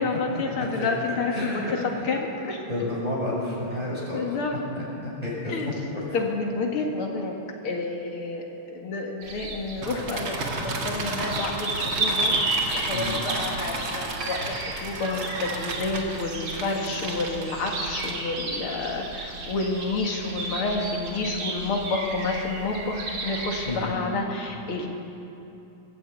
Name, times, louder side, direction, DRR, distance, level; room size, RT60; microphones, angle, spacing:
voice 1, 0.0-2.6 4.1-4.6 5.5-5.7 6.1-7.4 7.6-24.9, left 3 dB, 80° left, 1 dB, 2.8 m, -29 dB
voice 2, 1.3-2.0 2.7-4.4 4.7-5.5 6.1-6.2 12.9-13.2 23.7-24.0, left 1 dB, 15° right, -6 dB, 7.2 m, -31 dB
sound 1, 9.2-23.8, right 2 dB, 85° right, 3.4 m, -33 dB
sound 2, 9.8-18.5, right 2 dB, 65° right, 2.8 m, -34 dB
23.0 x 15.0 x 8.4 m, 2.9 s
omnidirectional pair, 2.3 m